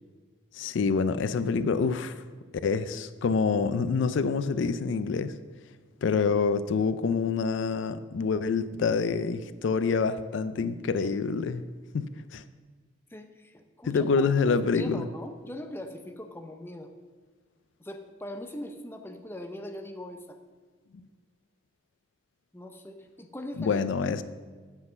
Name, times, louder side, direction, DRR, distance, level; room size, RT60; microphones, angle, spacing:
voice 1, 0.5-2.2 2.6-5.3 6.0-11.6 11.9-12.1 12.3-12.4 13.9-15.0 23.6-24.2, left 5 dB, 70° left, 13 dB, 0.4 m, -26 dB
voice 2, 13.1-16.9 17.8-20.4 22.5-23.8 24.1-24.2, left 1 dB, 10° left, 5 dB, 0.6 m, -41 dB
7.9 x 5.7 x 6.8 m, 1.5 s
head